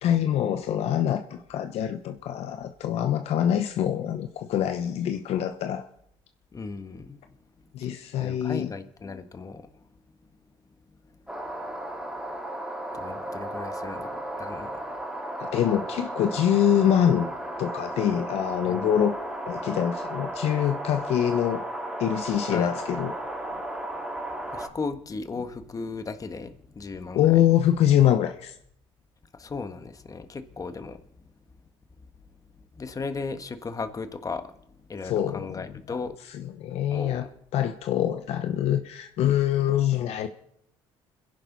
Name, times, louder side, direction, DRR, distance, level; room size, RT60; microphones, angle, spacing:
voice 1, 0.0-5.9 7.7-8.7 15.4-17.3 17.6-19.2 19.5-21.6 22.0-23.1 27.1-28.5 35.0-36.0 36.3-37.3 37.5-40.3, left 10 dB, 70° left, 1.0 m, -24 dB
voice 2, 6.5-7.2 8.2-9.7 12.9-14.8 18.7-18.9 22.5-22.8 24.5-27.4 29.3-31.0 32.8-34.5 34.9-36.1 36.9-37.3, left 4 dB, 30° left, 1.6 m, -36 dB
sound 1, 11.3-24.7, right 1 dB, 5° right, 3.5 m, -34 dB
29.0 x 11.0 x 4.1 m
supercardioid pair, 70°, 11 cm